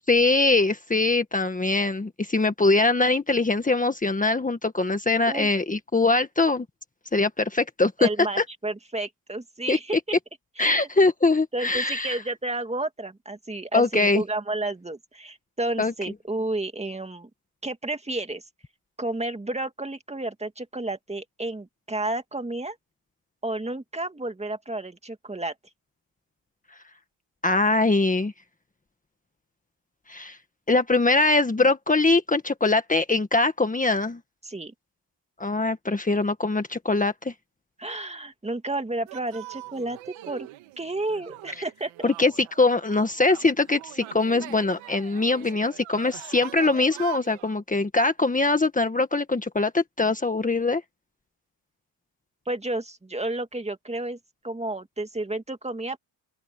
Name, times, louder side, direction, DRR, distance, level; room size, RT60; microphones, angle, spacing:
voice 1, 0.1-6.6 7.1-8.1 8.4-8.5 9.7-10.0 10.6-12.2 13.7-14.2 15.8-15.9 27.4-28.3 30.1-30.4 30.7-34.2 35.4-37.3 42.0-50.8, left 3 dB, 15° left, 1.7 m, -22 dB
voice 2, 8.0-10.2 10.6-10.9 11.5-17.3 17.6-18.4 19.0-22.8 23.4-25.5 34.4-34.7 37.8-40.5 40.8-42.1 52.5-54.2 54.4-56.0, right 2 dB, 15° right, 2.3 m, -31 dB
sound 1, 39.1-47.5, right 16 dB, 90° right, 2.7 m, -43 dB
open air
cardioid pair, 90°, 46 cm